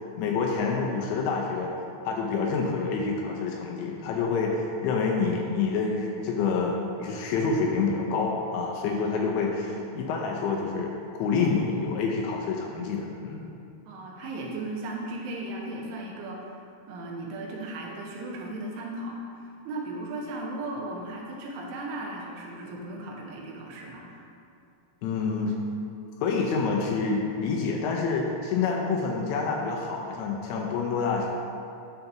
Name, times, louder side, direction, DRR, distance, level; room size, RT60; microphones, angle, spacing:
voice 1, 0.1-1.7 2.0-13.5 25.0-25.6 26.2-31.3, left 4 dB, 80° left, -1 dB, 2.7 m, -27 dB
voice 2, 13.9-16.6 16.9-24.2, right 2 dB, 90° right, -1 dB, 3.5 m, -36 dB
10.5 x 6.6 x 3.0 m, 2.6 s
omnidirectional pair, 5.6 m